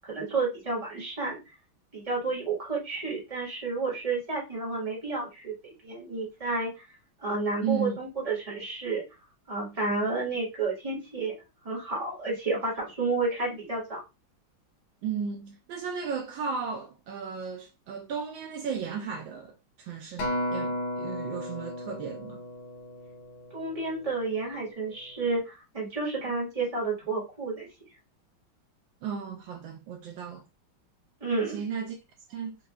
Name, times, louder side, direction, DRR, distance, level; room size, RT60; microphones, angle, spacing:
voice 1, 0.0-1.4 1.9-6.7 7.2-9.0 9.5-11.3 11.6-14.0 23.5-27.7 31.2-31.6, right 3 dB, 20° right, 1.5 m, -31 dB
voice 2, 7.6-8.0 15.0-22.4 26.4-26.5 29.0-30.4 31.5-32.0 32.3-32.6, right 6 dB, 75° right, 1.3 m, -35 dB
Acoustic guitar, 20.2-24.6 25.2-25.4, left 1 dB, 80° left, 1.7 m, -35 dB
4.6 x 2.7 x 2.3 m
omnidirectional pair, 2.2 m